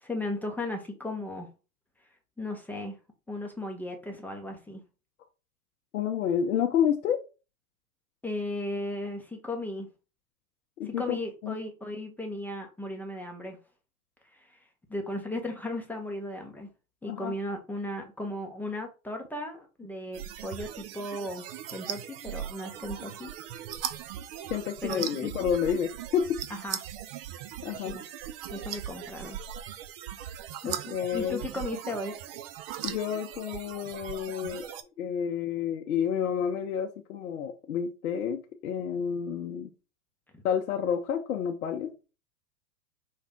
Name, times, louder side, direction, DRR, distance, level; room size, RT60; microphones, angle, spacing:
voice 1, 0.0-1.5 2.4-3.0 3.3-4.8 8.2-9.9 10.8-13.6 14.3-14.6 14.9-16.7 17.0-21.4 21.7-23.3 24.8-25.5 26.5-26.8 27.8-28.1 28.5-29.4 30.6-30.8 31.1-32.1 40.3-40.4, left 1 dB, 5° left, 0.6 m, -36 dB
voice 2, 5.9-7.2 10.8-11.2 11.4-11.6 17.0-17.3 24.5-26.4 27.6-27.9 30.6-31.4 32.8-34.7 35.0-39.7 40.4-41.9, left 8 dB, 80° left, 0.7 m, -29 dB
sound 1, 20.1-34.8, right 10 dB, 45° right, 0.5 m, -39 dB
5.2 x 2.4 x 3.5 m
hypercardioid pair, 110°, 43 cm